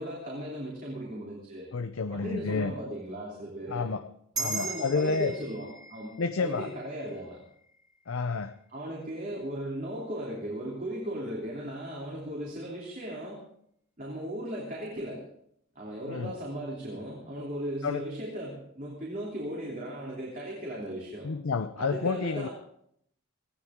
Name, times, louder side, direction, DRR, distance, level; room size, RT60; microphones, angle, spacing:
voice 1, 0.0-1.7 2.1-3.9 4.4-7.4 8.7-13.4 14.0-15.2 15.7-21.3 21.8-22.5, right 1 dB, 40° right, -4 dB, 3.2 m, -37 dB
voice 2, 1.7-2.7 3.7-4.0 4.4-5.3 6.2-6.7 8.1-8.5 16.1-16.3 17.8-18.0 21.2-22.5, left 4 dB, 80° left, 9 dB, 0.6 m, -30 dB
sound 1, 4.3-9.1, right 3 dB, 20° right, 3.2 m, -40 dB
18.5 x 15.5 x 3.7 m, 0.71 s
head